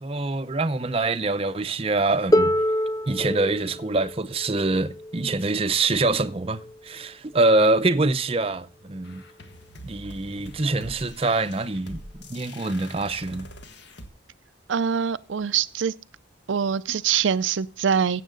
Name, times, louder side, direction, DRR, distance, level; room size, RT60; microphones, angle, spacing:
voice 1, 0.0-2.5 3.1-9.3 9.8-13.5, right 2 dB, 30° right, 0.6 m, -25 dB
Harp, 2.3-8.1 9.2-9.3, left 1 dB, 20° left, 0.5 m, -28 dB
sound 1, 9.0-14.1, left 1 dB, 65° left, 1.7 m, -44 dB
voice 2, 14.7-15.9 16.5-18.2, right 7 dB, 80° right, 0.5 m, -24 dB
15.5 x 7.5 x 3.8 m
head